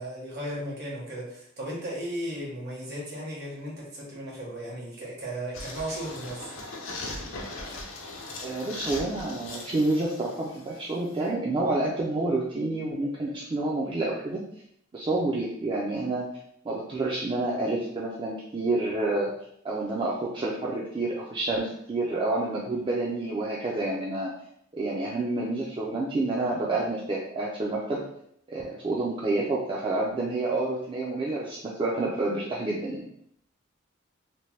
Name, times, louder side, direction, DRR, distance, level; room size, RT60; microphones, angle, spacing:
voice 1, 0.0-6.6, right 1 dB, 55° right, -4 dB, 1.0 m, -36 dB
sound 1, 5.5-11.2, left 2 dB, 85° left, 0.6 m, -39 dB
voice 2, 8.4-14.4 14.9-16.3 16.6-19.3 19.6-24.3 24.8-28.0 28.5-33.0, right 2 dB, 25° right, -5 dB, 0.3 m, -28 dB
2.9 x 2.1 x 3.0 m, 0.70 s
head